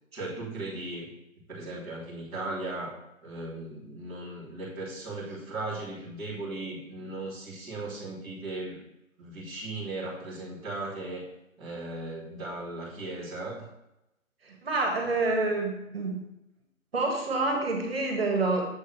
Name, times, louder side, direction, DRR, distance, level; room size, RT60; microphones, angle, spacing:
voice 1, 0.1-1.1 1.5-8.8 9.2-11.3 11.6-13.7, right 2 dB, 5° right, -15 dB, 1.2 m, -37 dB
voice 2, 14.4-16.3 16.9-18.6, right 3 dB, 45° right, 1 dB, 1.7 m, -28 dB
7.6 x 3.5 x 5.8 m, 0.87 s
hypercardioid pair, 165°, 41 cm